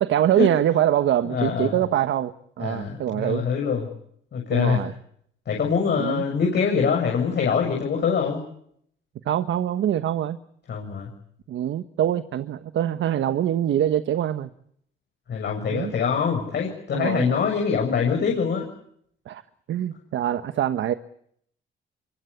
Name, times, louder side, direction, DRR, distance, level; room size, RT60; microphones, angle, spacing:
voice 1, 0.0-3.4 4.5-4.9 6.0-6.2 9.2-10.4 11.5-14.5 15.7-15.9 16.9-17.3 19.3-19.4 19.7-20.9, right 11 dB, 75° right, 11 dB, 1.3 m, -24 dB
voice 2, 1.3-1.8 2.6-3.9 4.3-4.8 5.5-8.4 10.7-11.1 15.3-18.7, left 6 dB, 60° left, 1 dB, 7.2 m, -24 dB
25.0 x 23.5 x 8.5 m, 0.69 s
cardioid pair, 90°, 20 cm